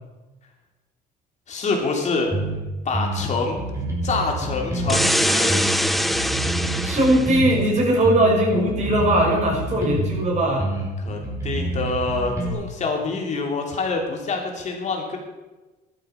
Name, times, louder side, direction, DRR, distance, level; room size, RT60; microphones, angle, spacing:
voice 1, 1.5-2.3 2.8-3.6 4.0-5.6 11.0-15.2, left 3 dB, 45° left, 1 dB, 2.9 m, -26 dB
sound 1, 2.3-2.6 2.9-5.1 5.5-7.7 8.0-10.2 10.6-12.5, right 2 dB, 15° right, 4.3 m, -27 dB
sound 2, 4.9-7.4, equal, ahead, 0.7 m, -23 dB
voice 2, 6.8-10.7, right 1 dB, 45° right, -1 dB, 6.0 m, -20 dB
13.0 x 12.0 x 5.7 m, 1.2 s
cardioid pair, 110°, 17 cm